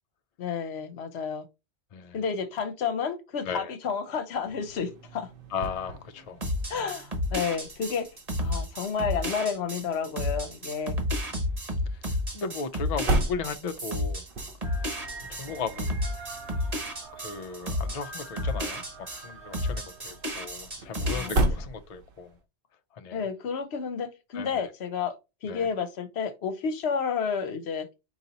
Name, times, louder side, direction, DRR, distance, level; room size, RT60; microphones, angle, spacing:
voice 1, 0.4-1.5 2.1-5.3 6.7-8.1 8.4-11.0 21.1-21.3 23.1-25.2 25.4-27.9, left 6 dB, 70° left, 0.9 m, -31 dB
sound 1, 4.3-22.4, right 1 dB, 55° right, 0.9 m, -36 dB
voice 2, 5.5-6.4 11.9-14.2 15.3-15.9 17.1-18.8 19.1-22.4 22.9-23.2 24.3-24.7 25.5-25.7, left 5 dB, 50° left, 0.5 m, -36 dB
sound 2, 6.4-19.2 19.5-21.4, left 1 dB, 35° right, 1.1 m, -31 dB
sound 3, 14.6-21.2, right 3 dB, 75° right, 2.1 m, -46 dB
4.6 x 2.8 x 4.0 m
omnidirectional pair, 1.2 m